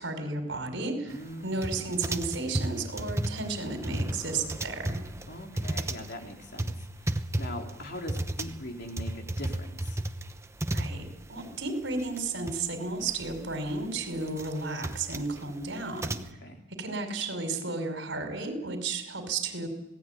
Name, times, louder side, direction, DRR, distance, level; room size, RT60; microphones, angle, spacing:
voice 1, 0.0-1.1 1.4-5.0 10.7-11.0 11.3-16.2 16.8-19.7, right 3 dB, 70° right, 6 dB, 5.5 m, -33 dB
voice 2, 1.0-2.1 5.3-10.0 16.4-16.6, left 1 dB, 60° left, 2 dB, 3.8 m, -42 dB
sound 1, 1.6-11.4 11.7-11.8 12.0-12.6 12.9-16.3, right 1 dB, 15° right, 1.0 m, -33 dB
27.0 x 18.0 x 9.5 m, 0.98 s
head